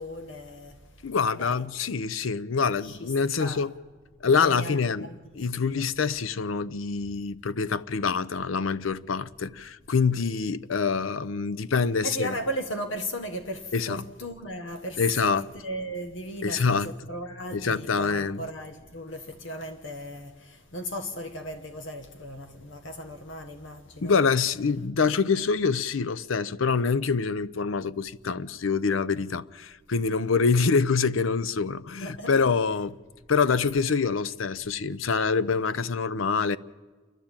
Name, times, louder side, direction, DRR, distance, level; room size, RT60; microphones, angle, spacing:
voice 1, 0.0-1.6 2.8-3.1 3.4-3.6 4.2-5.8 12.0-24.2 32.0-32.5, equal, 70° left, 1.3 m, -36 dB
voice 2, 1.0-3.7 4.2-5.1 5.4-12.3 13.7-14.0 15.0-15.4 16.4-16.9 17.5-18.5 24.0-33.0 33.3-36.6, left 5 dB, 85° left, 0.6 m, -25 dB
29.0 x 11.5 x 8.8 m
head